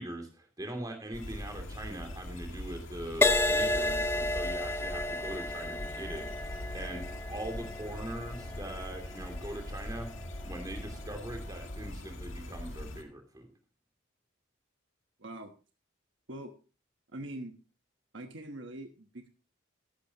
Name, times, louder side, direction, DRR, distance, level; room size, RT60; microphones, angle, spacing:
voice 1, 0.0-6.5 6.7-10.1 10.4-13.5, right 1 dB, 20° right, 4 dB, 2.8 m, -41 dB
sound 1, 1.1-13.0, left 1 dB, 70° left, 2.0 m, -42 dB
Crash cymbal, 3.2-10.8 11.5-11.8, left 2 dB, 10° left, 0.5 m, -32 dB
sound 2, 4.4-10.0, left 1 dB, 30° left, 3.5 m, -59 dB
voice 2, 15.2-15.5 16.3-16.5 17.1-17.5 18.1-19.3, right 1 dB, 60° right, 5 dB, 1.2 m, -43 dB
14.0 x 11.5 x 2.9 m, 0.35 s
head